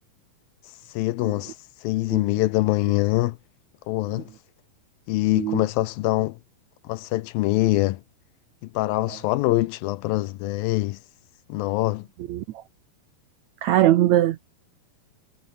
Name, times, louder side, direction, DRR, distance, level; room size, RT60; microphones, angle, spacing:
voice 1, 0.9-1.5 1.8-3.4 3.9-4.3 5.1-6.4 6.8-8.0 8.7-11.0 11.5-12.1, left 18 dB, 80° left, 2.4 m, -24 dB
voice 2, 13.6-14.5, right 14 dB, 85° right, 1.6 m, -20 dB
omnidirectional pair, 4.4 m